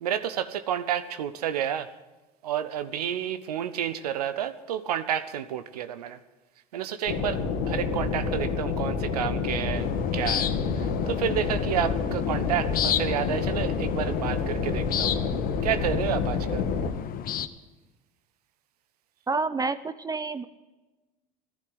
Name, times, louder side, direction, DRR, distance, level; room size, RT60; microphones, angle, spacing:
voice 1, 0.0-1.9 2.4-6.2 6.7-10.5 11.1-15.1 15.6-16.6, right 10 dB, 90° right, 12 dB, 0.8 m, -30 dB
sound 1, 7.1-16.9, left 5 dB, 70° left, 2.1 m, -28 dB
sound 2, 9.8-17.5, left 10 dB, 50° left, 1.0 m, -32 dB
voice 2, 19.3-20.4, right 4 dB, 20° right, 13 dB, 0.7 m, -28 dB
14.5 x 11.5 x 7.9 m, 1.1 s
hypercardioid pair, 75°, 19 cm